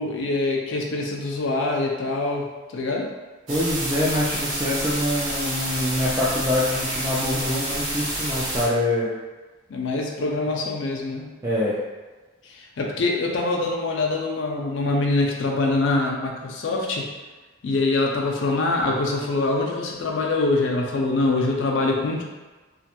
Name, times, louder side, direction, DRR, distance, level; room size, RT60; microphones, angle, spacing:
voice 1, 0.0-3.1 9.7-11.3 12.4-17.1 17.6-22.2, left 2 dB, 65° left, 0 dB, 0.4 m, -24 dB
voice 2, 3.5-9.1 11.4-11.7, left 1 dB, 15° right, -9 dB, 0.3 m, -24 dB
sound 1, 3.5-8.7, right 1 dB, 80° right, 0.7 m, -29 dB
2.4 x 2.2 x 2.8 m, 1.3 s
head